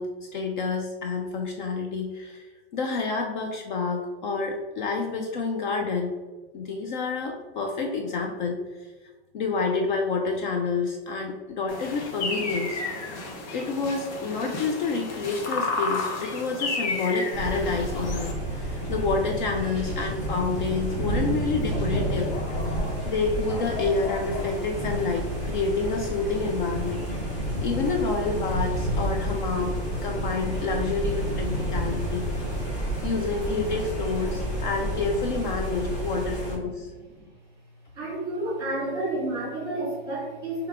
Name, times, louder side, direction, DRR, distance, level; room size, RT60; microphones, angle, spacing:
voice 1, 0.0-2.5 2.7-6.1 6.5-8.9 9.3-12.8 13.5-27.0 27.6-29.7 30.0-32.3 33.0-36.9, left 4 dB, 50° left, 3 dB, 0.4 m, -28 dB
sound 1, 11.7-18.3, left 3 dB, 85° left, 0.9 m, -32 dB
sound 2, 17.3-36.6, right 1 dB, 20° left, 1.4 m, -30 dB
voice 2, 37.9-40.7, right 1 dB, 15° right, -5 dB, 1.4 m, -30 dB
3.4 x 2.8 x 3.5 m, 1.3 s
supercardioid pair, 165°, 33 cm